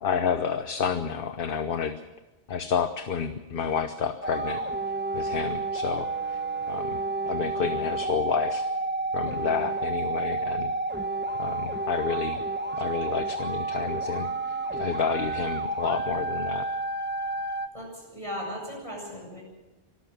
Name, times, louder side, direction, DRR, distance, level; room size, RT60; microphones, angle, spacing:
voice 1, 0.0-2.0 2.5-4.6 5.1-6.4 6.7-8.7 9.1-10.7 11.4-12.4 12.8-16.7, left 7 dB, 55° left, 9 dB, 1.0 m, -30 dB
sound 1, 4.2-17.7, right 3 dB, 10° right, 1.0 m, -30 dB
voice 2, 17.7-19.4, equal, 30° left, 0 dB, 8.0 m, -37 dB
25.0 x 14.0 x 7.4 m, 1.1 s
omnidirectional pair, 1.1 m